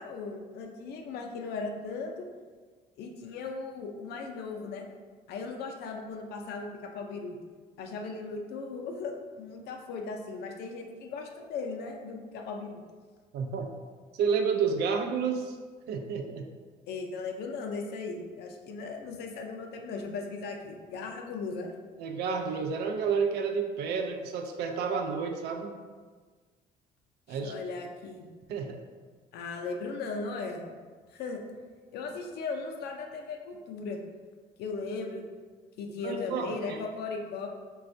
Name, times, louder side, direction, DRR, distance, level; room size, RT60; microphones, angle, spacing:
voice 1, 0.0-2.3 3.0-4.8 5.3-7.4 7.8-12.8 16.9-21.7 27.3-28.3 29.3-30.6 31.1-31.4 31.9-34.0 34.6-35.2 35.8-37.5, left 4 dB, 70° left, 2 dB, 0.4 m, -37 dB
voice 2, 13.3-13.7 14.2-15.6 15.9-16.5 22.0-25.7 27.3-27.5 28.5-28.8 36.0-36.8, right 5 dB, 75° right, 4 dB, 0.4 m, -30 dB
4.0 x 2.3 x 2.5 m, 1.5 s
cardioid pair, 110°, 17 cm